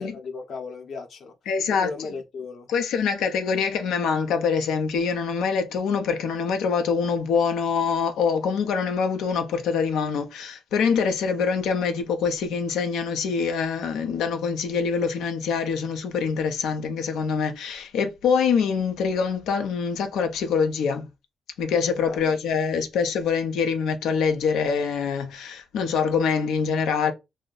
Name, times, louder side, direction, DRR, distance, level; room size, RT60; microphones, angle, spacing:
voice 1, 0.0-1.3 1.7-2.7 22.0-22.3, left 4 dB, 55° left, 0.7 m, -36 dB
voice 2, 1.5-1.9 2.7-21.1 21.6-27.1, left 6 dB, 90° left, 0.6 m, -25 dB
2.6 x 2.1 x 3.8 m
cardioid pair, 130°, 0 cm